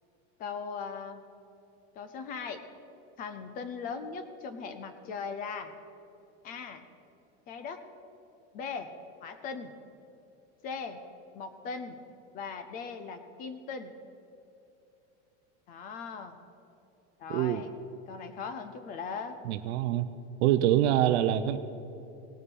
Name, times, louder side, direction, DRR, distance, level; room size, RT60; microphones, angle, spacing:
voice 1, 0.4-1.2 2.0-2.6 3.2-5.7 6.4-6.8 7.5-7.8 8.5-8.9 9.2-9.8 10.6-11.0 11.3-12.0 12.3-13.9 15.7-16.4 17.2-17.7 18.1-19.4, left 5 dB, 25° left, 9 dB, 0.5 m, -39 dB
voice 2, 17.3-17.6 19.5-20.1 20.4-21.6, right 12 dB, 65° right, 10 dB, 0.6 m, -25 dB
18.5 x 6.9 x 5.3 m, 2.8 s
supercardioid pair, 170°, 36 cm